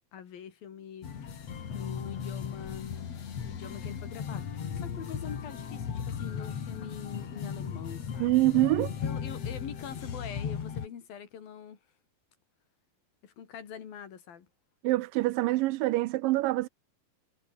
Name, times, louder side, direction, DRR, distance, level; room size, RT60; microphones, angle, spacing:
voice 1, 0.1-1.1 1.7-3.1 3.4-8.3 9.0-11.8 13.2-14.5, left 8 dB, 80° left, 4.7 m, -44 dB
sound 1, 1.0-10.9, left 7 dB, 50° left, 3.2 m, -36 dB
voice 2, 8.2-9.0 14.8-16.7, right 19 dB, 80° right, 2.2 m, -25 dB
omnidirectional pair, 4.1 m